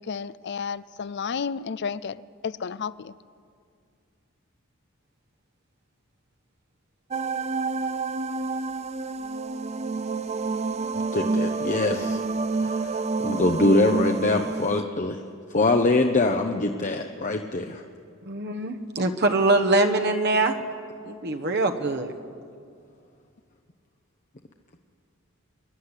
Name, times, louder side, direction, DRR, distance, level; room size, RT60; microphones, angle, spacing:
voice 1, 0.0-3.1, left 6 dB, 55° left, 18 dB, 0.5 m, -32 dB
sound 1, 7.1-14.8, right 4 dB, 30° right, 0.5 m, -28 dB
voice 2, 11.1-12.2 12.6-15.2 15.5-17.8, left 2 dB, 35° left, 4 dB, 0.8 m, -23 dB
voice 3, 18.3-20.6 21.0-22.1, right 2 dB, 55° right, 5 dB, 1.2 m, -23 dB
24.5 x 11.5 x 9.9 m, 2.3 s
head